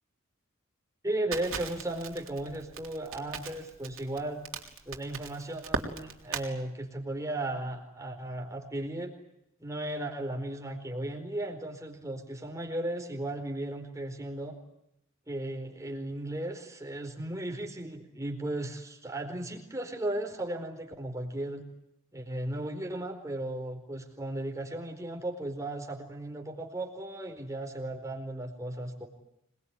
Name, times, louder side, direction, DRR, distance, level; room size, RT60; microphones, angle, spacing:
voice 1, 1.0-4.4 4.9-9.1 9.6-14.5 15.3-21.6 22.1-29.1, right 1 dB, 15° right, 2 dB, 4.5 m, -36 dB
Crackle, 1.3-6.5, right 4 dB, 65° right, 3.8 m, -38 dB
26.5 x 21.0 x 9.9 m, 0.82 s
head